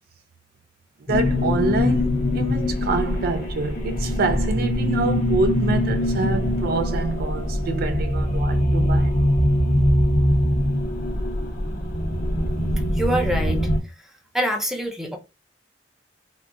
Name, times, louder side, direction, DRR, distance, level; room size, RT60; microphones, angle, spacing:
sound 1, 1.1-13.8, left 1 dB, 50° left, 0.7 m, -22 dB
voice 1, 1.1-9.2, right 3 dB, 50° right, 0.3 m, -26 dB
voice 2, 13.0-13.7 14.3-15.2, equal, ahead, 0.5 m, -25 dB
3.7 x 2.1 x 2.3 m
head